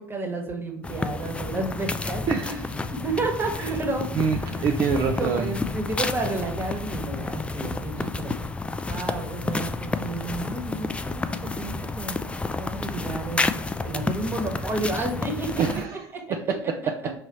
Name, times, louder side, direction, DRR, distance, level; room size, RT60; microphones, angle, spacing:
voice 1, 0.0-4.5 5.1-8.3 8.9-12.2 12.6-15.8, right 2 dB, 20° right, 2 dB, 1.2 m, -31 dB
sound 1, 0.8-15.9, left 3 dB, 10° left, 0.3 m, -30 dB
voice 2, 2.3-2.7 3.6-3.8 4.1-5.5 8.0-8.1 15.6-16.0 16.3-16.9, right 6 dB, 50° right, 3 dB, 0.5 m, -26 dB
4.8 x 2.8 x 2.9 m, 0.72 s
hypercardioid pair, 80°, 10 cm